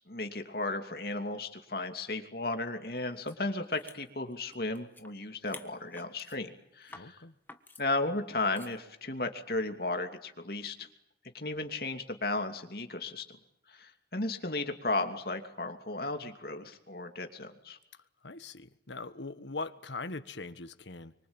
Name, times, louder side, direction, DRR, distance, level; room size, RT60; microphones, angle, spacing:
voice 1, 0.1-7.2 7.8-10.9 11.3-13.4 13.7-17.8, left 2 dB, 55° left, 2.9 m, -35 dB
sound 1, 3.3-3.4 3.7-5.1 5.4-6.4 6.8-7.1 7.5-7.8 8.6-8.8, left 3 dB, 10° left, 1.5 m, -50 dB
voice 2, 6.9-7.3 18.2-21.1, left 3 dB, 80° left, 1.5 m, -41 dB
27.0 x 24.5 x 9.0 m
head